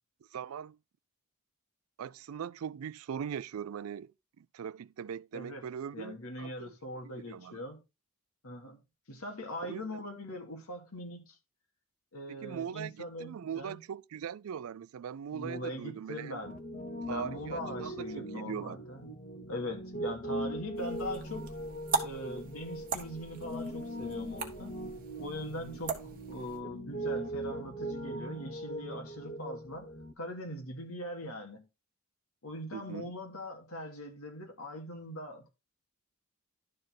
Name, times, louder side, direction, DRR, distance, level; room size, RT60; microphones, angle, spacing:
voice 1, 0.3-0.8 2.0-6.7 7.1-7.6 9.6-10.0 12.3-16.4 17.1-18.8 32.7-33.1, right 8 dB, 75° right, 0.4 m, -40 dB
voice 2, 5.3-5.6 5.9-7.8 8.4-8.8 9.1-11.4 12.1-13.8 15.3-16.5 17.1-19.1 19.5-21.5 22.0-24.8 25.2-29.9 30.2-31.6 32.4-35.5, left 1 dB, 80° left, 2.7 m, -41 dB
Piano, 16.4-30.1, right 1 dB, 35° left, 1.2 m, -40 dB
sound 1, 20.8-26.6, right 5 dB, 40° right, 1.5 m, -39 dB
11.5 x 4.3 x 4.6 m
head